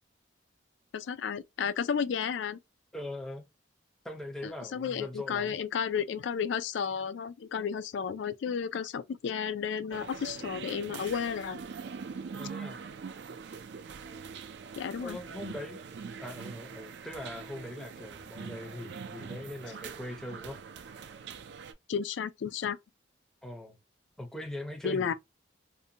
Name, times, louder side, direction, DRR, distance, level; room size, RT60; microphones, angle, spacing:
voice 1, 0.9-2.6 4.4-11.6 14.8-15.2 21.9-22.8 24.8-25.1, left 7 dB, 70° left, 0.3 m, -32 dB
voice 2, 2.9-3.5 4.0-5.6 12.3-12.8 15.0-15.8 16.2-20.6 23.4-23.8 24.2-25.1, left 1 dB, 5° left, 0.5 m, -41 dB
sound 1, 9.9-21.7, right 5 dB, 60° right, 0.3 m, -43 dB
2.6 x 2.1 x 2.7 m
head